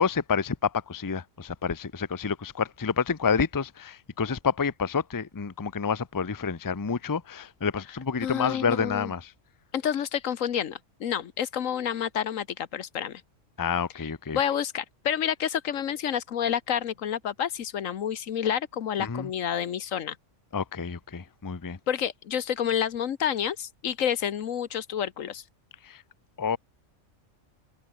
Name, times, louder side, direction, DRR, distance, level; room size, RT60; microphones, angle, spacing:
voice 1, 0.0-9.3 13.6-14.4 19.0-19.3 20.5-21.8 25.8-26.0 26.4-26.6, left 6 dB, 20° left, 0.6 m, -28 dB
voice 2, 8.2-9.1 9.7-13.2 14.3-20.2 21.9-25.4, left 9 dB, 75° left, 1.4 m, -29 dB
omnidirectional pair, 1.4 m